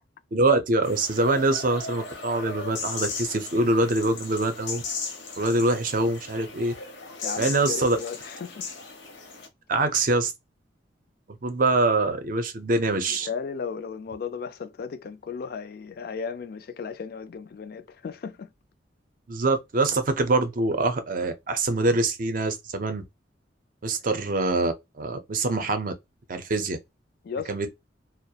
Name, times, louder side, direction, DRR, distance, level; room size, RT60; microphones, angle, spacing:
voice 1, 0.3-4.8 5.4-6.7 7.4-8.0 9.7-10.3 11.4-13.3 19.3-23.0 23.8-25.9 26.3-26.8 27.5-27.7, right 2 dB, 45° right, 0.5 m, -24 dB
sound 1, 0.8-9.5, left 4 dB, 80° left, 0.7 m, -36 dB
voice 2, 7.2-8.7 13.1-18.5 27.2-27.7, left 6 dB, 55° left, 0.3 m, -35 dB
2.3 x 2.0 x 2.7 m
head